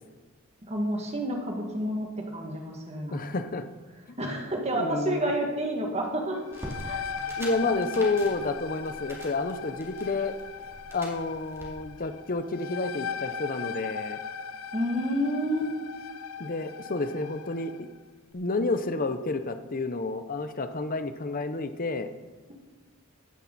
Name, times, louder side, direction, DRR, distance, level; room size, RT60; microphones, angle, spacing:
voice 1, 0.6-3.2 4.2-7.0 7.6-7.7 14.7-15.7, equal, 30° right, 1 dB, 2.1 m, -30 dB
voice 2, 3.1-3.7 4.7-5.3 7.4-10.3 10.9-14.2 16.4-17.9 18.3-22.1, left 3 dB, 40° left, 9 dB, 0.7 m, -30 dB
sound 1, 6.3-17.8, left 6 dB, 90° left, 0.7 m, -38 dB
sound 2, 6.5-11.7, equal, 10° right, 2.9 m, -44 dB
16.0 x 10.5 x 4.2 m, 1.3 s
head